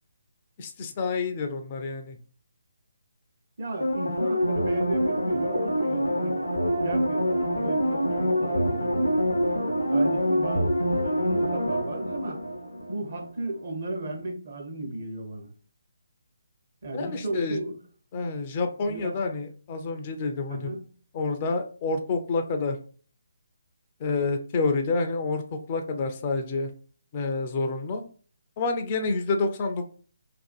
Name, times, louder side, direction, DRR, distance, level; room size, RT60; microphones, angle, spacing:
voice 1, 0.6-2.2 16.9-17.6 18.1-20.7 21.1-22.8 24.0-26.7 27.1-28.0 28.6-29.9, left 3 dB, 30° left, 5 dB, 0.3 m, -28 dB
voice 2, 3.6-6.4 6.8-9.4 9.9-12.4 12.9-15.5 16.8-17.8 18.9-19.2 20.5-20.8, right 2 dB, 45° right, 1 dB, 0.7 m, -35 dB
sound 1, 3.8-13.2 13.5-13.6, equal, 85° left, 0.5 m, -26 dB
2.5 x 2.4 x 2.3 m, 0.41 s
figure-of-eight pair, 145°, 0 cm